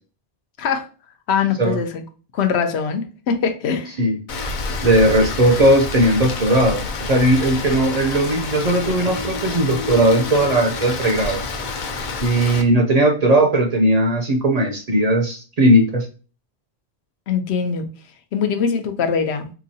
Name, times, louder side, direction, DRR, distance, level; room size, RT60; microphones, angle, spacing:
voice 1, 1.3-2.0 2.3-4.0 17.3-17.8 18.3-19.5, left 6 dB, 80° left, 0.9 m, -22 dB
Rain, 4.3-12.6, left 3 dB, 55° left, 0.6 m, -28 dB
voice 2, 4.8-11.4 12.2-16.1, right 1 dB, 50° right, 0.5 m, -17 dB
3.7 x 2.9 x 2.7 m
omnidirectional pair, 1.1 m